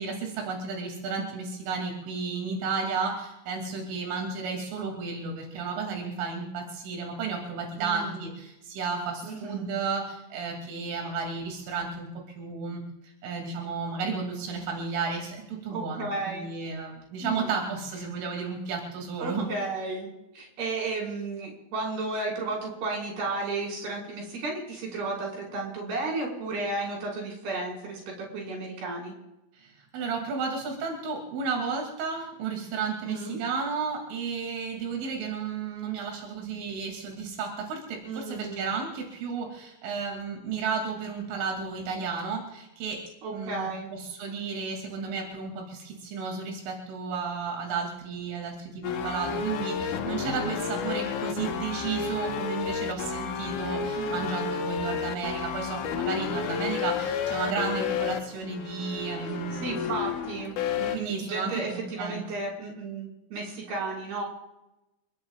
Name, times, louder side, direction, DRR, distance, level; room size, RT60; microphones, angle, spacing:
voice 1, 0.0-12.1 12.4-19.5 29.6-43.0 43.3-59.9 60.9-62.2, right 5 dB, 90° right, 1 dB, 5.3 m, -33 dB
voice 2, 7.8-8.3 9.2-9.7 15.7-16.5 17.2-17.5 19.2-29.1 33.0-33.4 38.0-38.7 43.2-43.9 53.9-54.5 59.6-64.2, right 3 dB, 55° right, -1 dB, 7.2 m, -33 dB
sound 1, 48.8-61.0, left 6 dB, 80° left, 1.7 m, -31 dB
30.0 x 17.5 x 2.5 m, 0.93 s
omnidirectional pair, 5.5 m